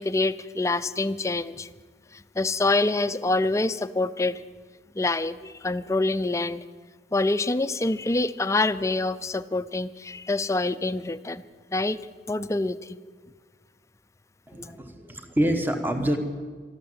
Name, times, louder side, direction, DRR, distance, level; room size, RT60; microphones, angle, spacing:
voice 1, 0.0-1.7 2.1-4.4 5.0-6.6 7.1-11.4 11.7-12.0 12.3-13.0, left 2 dB, 15° left, 13 dB, 0.4 m, -26 dB
voice 2, 14.5-16.2, equal, 10° right, 6 dB, 1.1 m, -26 dB
13.0 x 12.0 x 7.9 m, 1.5 s
head